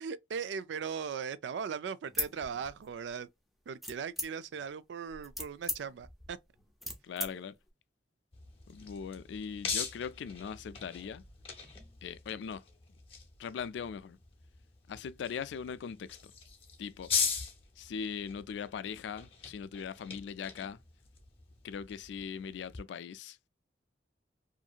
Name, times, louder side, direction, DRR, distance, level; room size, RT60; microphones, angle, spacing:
voice 1, 0.0-3.3 3.7-6.4, right 6 dB, 80° right, 0.3 m, -38 dB
sound 1, 2.1-3.1 3.8-4.6 5.1-7.3, left 1 dB, ahead, 0.5 m, -38 dB
voice 2, 7.0-7.5 8.7-11.2 12.0-12.6 13.4-14.2 14.9-16.3 16.8-17.1 17.8-20.8 21.6-23.5, left 7 dB, 80° left, 0.3 m, -40 dB
sound 2, 8.3-22.8, left 6 dB, 30° left, 0.7 m, -41 dB
2.8 x 2.6 x 2.3 m
head